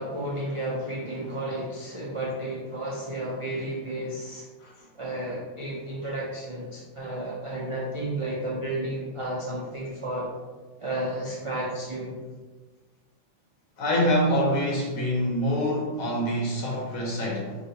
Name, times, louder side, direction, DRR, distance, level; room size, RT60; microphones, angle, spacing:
voice 1, 0.0-4.5 5.0-10.3 10.8-12.1 16.7-16.8, right 1 dB, 50° right, -6 dB, 0.3 m, -32 dB
voice 2, 13.8-17.6, equal, 75° left, -2 dB, 1.3 m, -25 dB
3.9 x 2.9 x 2.8 m, 1.3 s
omnidirectional pair, 1.5 m